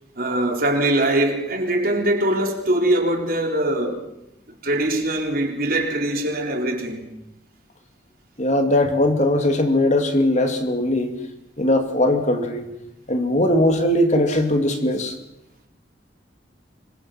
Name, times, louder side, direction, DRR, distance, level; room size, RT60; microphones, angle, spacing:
voice 1, 0.2-4.0 4.6-7.1, right 1 dB, 50° right, 4.1 m, -22 dB
voice 2, 8.4-11.2 11.6-12.6 13.1-15.1, left 1 dB, 40° left, 2.6 m, -20 dB
26.5 x 23.5 x 5.9 m
head